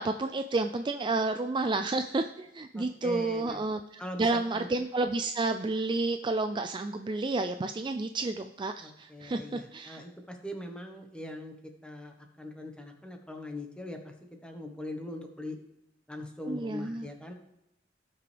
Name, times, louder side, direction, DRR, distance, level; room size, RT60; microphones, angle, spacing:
voice 1, 0.0-10.0 16.5-17.1, right 3 dB, 25° right, 8 dB, 0.4 m, -31 dB
voice 2, 2.7-3.6 4.0-4.7 8.8-11.5 11.8-14.0 14.4-15.6 16.1-17.3, left 1 dB, 5° left, 3 dB, 1.3 m, -41 dB
17.5 x 5.9 x 3.4 m, 0.84 s
head